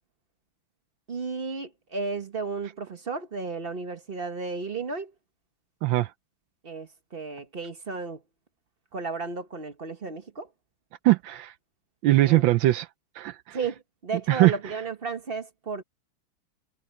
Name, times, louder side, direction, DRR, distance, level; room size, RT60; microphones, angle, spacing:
voice 1, 1.1-5.1 6.6-8.2 8.9-10.5 12.2-12.4 13.5-15.8, right 4 dB, 35° right, 1.1 m, -33 dB
voice 2, 11.0-11.5 12.0-12.9 13.2-13.6 14.3-14.5, right 16 dB, 75° right, 1.1 m, -21 dB
omnidirectional pair, 2.4 m